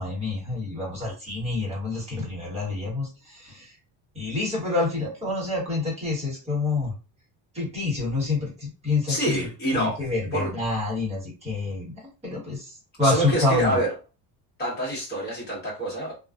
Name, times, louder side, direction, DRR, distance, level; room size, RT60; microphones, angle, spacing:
voice 1, 0.0-3.7 4.1-6.9 7.5-11.9 12.2-13.8, left 3 dB, 15° right, -4 dB, 1.2 m, -27 dB
voice 2, 9.1-10.0 10.3-10.5 13.0-13.9 14.6-16.1, right 1 dB, 25° left, -5 dB, 1.2 m, -26 dB
2.4 x 2.3 x 2.3 m, 0.32 s
cardioid pair, 175°, 42 cm